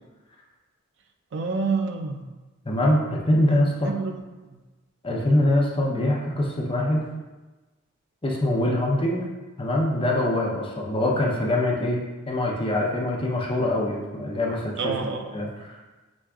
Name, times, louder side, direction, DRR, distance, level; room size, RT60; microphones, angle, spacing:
voice 1, 1.3-2.2 3.5-4.2 4.5-4.6 14.8-15.5, right 4 dB, 60° right, 5 dB, 0.4 m, -28 dB
voice 2, 2.6-3.9 5.0-7.0 8.2-9.3 9.6-14.9 15.3-15.8, left 1 dB, 25° left, -2 dB, 0.7 m, -24 dB
6.3 x 3.3 x 2.4 m, 1.2 s
head